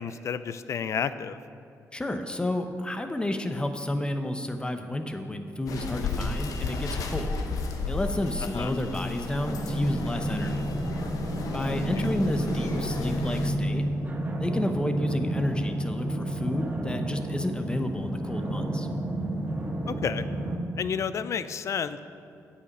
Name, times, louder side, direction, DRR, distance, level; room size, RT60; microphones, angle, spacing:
voice 1, 0.0-1.4 8.4-8.7 11.7-12.1 19.9-20.2 20.8-22.0, left 7 dB, 55° left, 13 dB, 0.4 m, -31 dB
voice 2, 1.9-7.3 7.9-10.6 11.5-13.9 14.4-18.9, left 1 dB, 15° left, 7 dB, 0.8 m, -31 dB
sound 1, 5.7-13.5, left 4 dB, 75° left, 0.9 m, -34 dB
sound 2, 9.4-20.6, right 1 dB, 25° right, 1.2 m, -30 dB
8.5 x 8.2 x 5.4 m, 2.5 s
cardioid pair, 95°, 6 cm